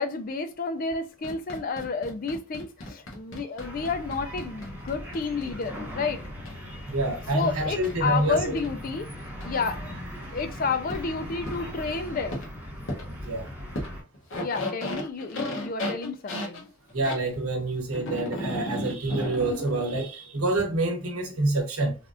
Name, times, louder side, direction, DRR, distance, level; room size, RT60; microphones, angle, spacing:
voice 1, 0.0-6.2 7.3-9.8 10.3-12.5 14.4-16.7, left 4 dB, 40° left, 0.3 m, -31 dB
sound 1, 1.2-5.6 6.4-6.5 7.8-7.9 8.6-8.7 9.4-9.5 10.9-11.0 11.5-11.6 12.3-12.5 12.9-13.0 13.7-13.9 14.1-17.2 17.9-20.0, left 1 dB, 60° left, 0.9 m, -34 dB
sound 2, 3.6-14.0, equal, 10° right, 0.9 m, -39 dB
voice 2, 6.9-8.4 13.2-13.5 16.9-22.0, right 2 dB, 85° right, 1.0 m, -27 dB
3.4 x 2.3 x 2.5 m
head